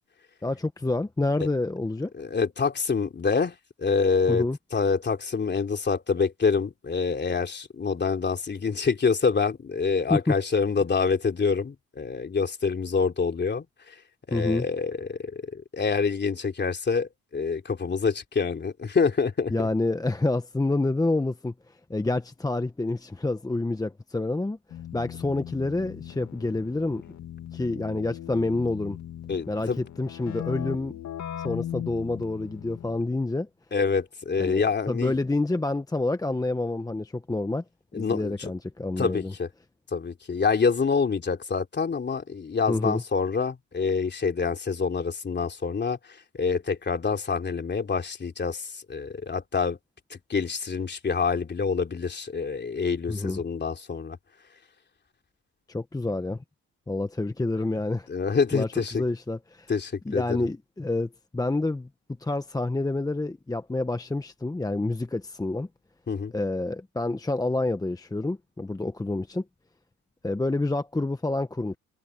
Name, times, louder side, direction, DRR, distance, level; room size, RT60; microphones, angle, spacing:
voice 1, 0.4-2.1 4.3-4.6 10.1-10.3 14.3-14.6 19.5-21.5 21.9-24.6 24.9-27.0 27.5-29.0 29.5-31.0 31.4-33.5 34.4-37.6 38.0-39.3 42.7-43.0 53.1-53.4 55.7-56.4 56.9-58.1 58.5-59.7 60.0-61.9 62.2-65.7 66.3-69.4 70.2-71.8, left 2 dB, 10° left, 1.0 m, -28 dB
voice 2, 2.2-4.4 4.7-13.9 14.3-19.7 29.3-29.8 33.7-35.2 37.9-38.5 39.0-39.5 39.9-46.0 46.4-49.8 50.1-54.2 58.1-59.0 59.7-60.5 66.1-66.3, left 5 dB, 35° left, 3.1 m, -26 dB
Keyboard (musical), 24.7-33.1, left 11 dB, 70° left, 2.2 m, -38 dB
cardioid pair, 90°, 30 cm